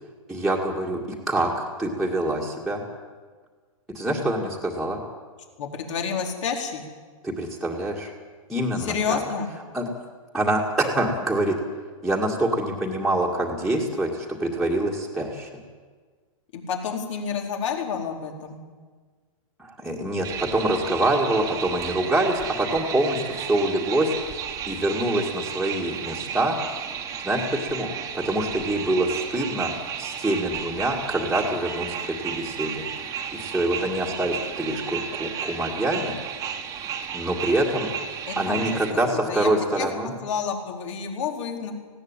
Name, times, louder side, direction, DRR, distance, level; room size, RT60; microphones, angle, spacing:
voice 1, 0.3-1.0 1.3-2.8 3.9-5.0 7.2-8.1 8.5-9.2 9.7-9.9 10.3-11.6 12.0-15.5 19.6-24.1 24.7-26.6 27.2-27.9 28.1-29.7 30.0-32.8 33.3-36.2 37.1-37.9 38.4-40.2, right 1 dB, ahead, -5 dB, 2.1 m, -25 dB
voice 2, 5.6-6.8 8.8-9.5 16.5-18.6 38.3-38.8 39.3-39.5 39.8-39.9 40.2-41.7, left 6 dB, 60° left, 2 dB, 4.5 m, -29 dB
sound 1, 20.2-38.9, right 7 dB, 20° right, 1.6 m, -33 dB
19.0 x 17.0 x 9.0 m, 1.5 s
hypercardioid pair, 150°, 18 cm